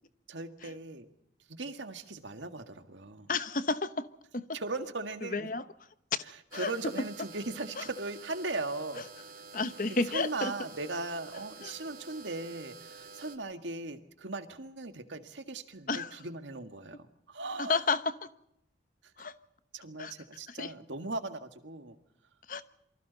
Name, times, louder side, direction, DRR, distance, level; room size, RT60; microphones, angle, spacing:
voice 1, 0.3-1.1 1.5-3.3 4.5-5.5 6.5-9.1 9.9-17.8 19.7-22.0, right 3 dB, 80° right, 1.9 m, -38 dB
voice 2, 3.3-4.1 4.3-4.5 5.2-5.6 6.5-6.7 7.8-7.9 9.5-10.5 11.6-11.7 15.9-16.2 17.6-18.1 19.2-19.4 20.0-20.1 20.5-20.7 22.5-22.6, left 3 dB, 45° left, 1.0 m, -31 dB
sound 1, 6.5-13.4, right 4 dB, 45° right, 2.2 m, -49 dB
28.0 x 24.5 x 4.1 m
head